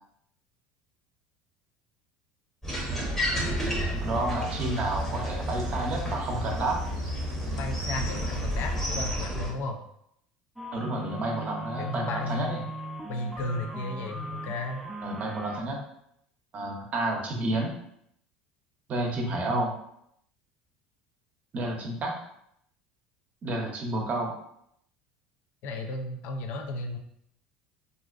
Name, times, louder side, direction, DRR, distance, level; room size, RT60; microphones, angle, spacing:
sound 1, 2.6-9.5, equal, 10° left, 0.8 m, -32 dB
sound 2, 3.3-9.0, left 1 dB, 80° right, 0.4 m, -37 dB
voice 1, 4.0-6.8 10.7-12.6 15.0-15.8 16.5-17.8 18.9-19.8 21.5-22.2 23.4-24.3, right 2 dB, 45° right, 1 dB, 0.7 m, -30 dB
voice 2, 7.5-9.8 11.8-12.6 13.1-14.8 19.1-19.6 25.6-27.0, left 2 dB, 60° left, 3 dB, 0.4 m, -34 dB
sound 3, 10.6-15.6, right 1 dB, 5° right, 0.4 m, -39 dB
2.5 x 2.1 x 2.4 m, 0.73 s
hypercardioid pair, 85°, 4 cm